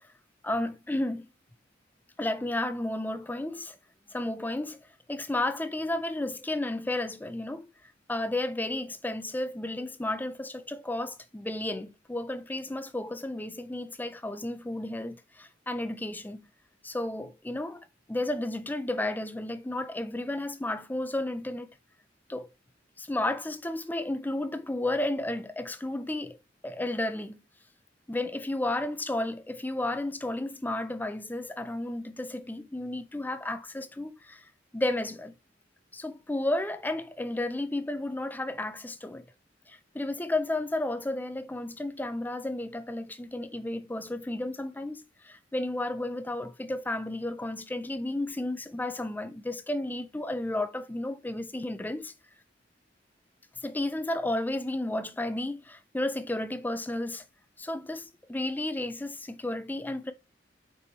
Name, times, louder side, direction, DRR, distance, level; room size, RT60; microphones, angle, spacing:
voice 1, 0.4-1.3 2.2-3.8 4.1-4.8 5.1-7.7 8.1-16.4 16.8-21.7 22.3-22.5 23.0-26.4 26.6-27.4 28.1-34.4 34.7-35.3 35.9-39.2 39.7-52.1 53.6-57.2 57.6-60.1, left 1 dB, 10° left, 0.4 m, -32 dB
5.5 x 4.5 x 4.0 m
head